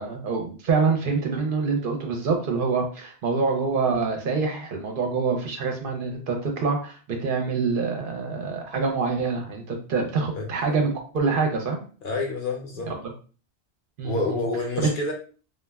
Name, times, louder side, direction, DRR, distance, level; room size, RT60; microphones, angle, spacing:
voice 1, 0.0-11.8 12.9-13.1 14.0-14.2 14.8-14.9, right 4 dB, 60° right, 0.7 m, -26 dB
voice 2, 12.0-12.9 14.0-15.1, left 3 dB, 60° left, 0.8 m, -28 dB
2.3 x 2.1 x 3.3 m
omnidirectional pair, 1.1 m